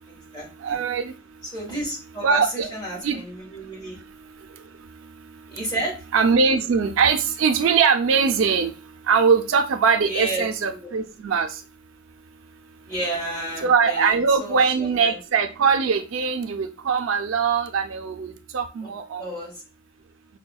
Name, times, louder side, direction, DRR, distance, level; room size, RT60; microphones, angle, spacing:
voice 1, 0.1-0.8 1.5-4.0 5.5-5.9 10.1-10.9 12.9-15.2 18.8-18.9 19.2-19.5, right 1 dB, 20° left, -3 dB, 1.7 m, -32 dB
voice 2, 0.6-1.1 2.2-2.7 3.0-3.2 6.1-8.7 9.1-11.5 13.6-19.3, right 5 dB, 80° right, 7 dB, 0.4 m, -21 dB
5.4 x 2.1 x 2.2 m, 0.32 s
head